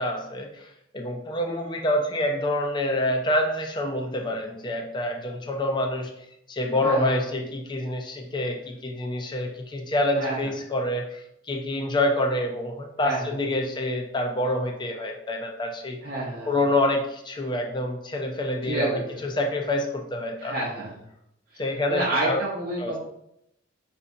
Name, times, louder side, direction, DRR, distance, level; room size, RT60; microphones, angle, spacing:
voice 1, 0.0-6.1 6.5-11.2 11.5-16.0 16.5-20.5 21.6-22.4 22.8-23.0, left 1 dB, 25° left, 3 dB, 0.4 m, -27 dB
voice 2, 6.8-7.3 10.2-10.5 13.0-13.4 16.0-16.6 18.6-19.0 20.4-21.0 21.9-23.0, right 2 dB, 50° right, -6 dB, 0.8 m, -29 dB
4.6 x 2.6 x 2.6 m, 0.78 s
head